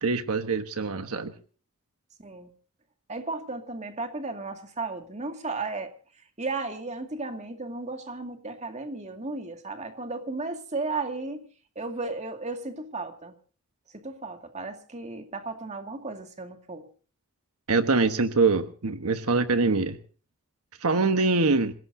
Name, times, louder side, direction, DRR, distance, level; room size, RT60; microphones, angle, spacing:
voice 1, 0.0-1.3 17.7-20.0 20.8-21.7, right 3 dB, 80° right, 8 dB, 1.2 m, -24 dB
voice 2, 3.1-5.9 6.4-11.5 11.8-13.3 13.9-16.9, right 3 dB, 30° right, 5 dB, 2.2 m, -34 dB
27.0 x 17.5 x 2.7 m, 0.41 s
head